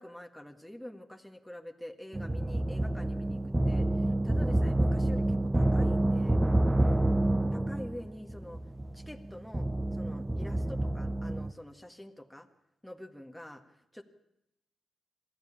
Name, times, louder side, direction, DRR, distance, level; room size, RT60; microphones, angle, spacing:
voice 1, 0.0-6.4 7.5-8.6 8.9-12.5 12.8-13.6 13.9-14.0, left 1 dB, 5° left, 4 dB, 1.7 m, -46 dB
sound 1, 2.1-11.5, right 1 dB, 15° right, 0.8 m, -28 dB
22.5 x 14.5 x 8.7 m, 0.85 s
cardioid pair, 70°, 0 cm